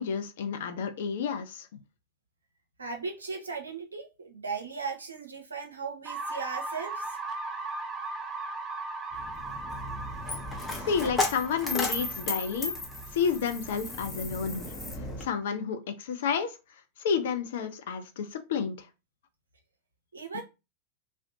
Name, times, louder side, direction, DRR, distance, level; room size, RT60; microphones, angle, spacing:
voice 1, 0.0-1.7 10.8-12.7 13.1-14.7 15.2-16.5 17.0-18.9, left 6 dB, 55° left, 0.4 m, -30 dB
voice 2, 2.8-7.2 20.1-20.4, right 5 dB, 75° right, 0.6 m, -37 dB
sound 1, 6.0-13.9, right 3 dB, 25° right, 0.5 m, -38 dB
Coin (dropping), 9.1-15.2, left 2 dB, 15° left, 0.7 m, -34 dB
2.5 x 2.1 x 2.6 m
figure-of-eight pair, 90°, 0 cm